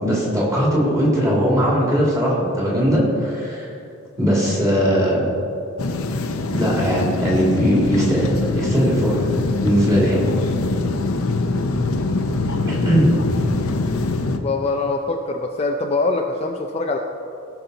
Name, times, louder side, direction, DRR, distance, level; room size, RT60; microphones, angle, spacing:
voice 1, 0.0-3.7 4.2-5.3 6.5-9.3 9.6-10.2 12.7-13.2, equal, 15° right, -5 dB, 2.5 m, -19 dB
sound 1, 5.8-14.4, left 2 dB, 70° left, 0.7 m, -23 dB
voice 2, 14.3-17.0, left 3 dB, 25° left, 3 dB, 0.5 m, -23 dB
16.5 x 6.0 x 4.0 m, 2.6 s
head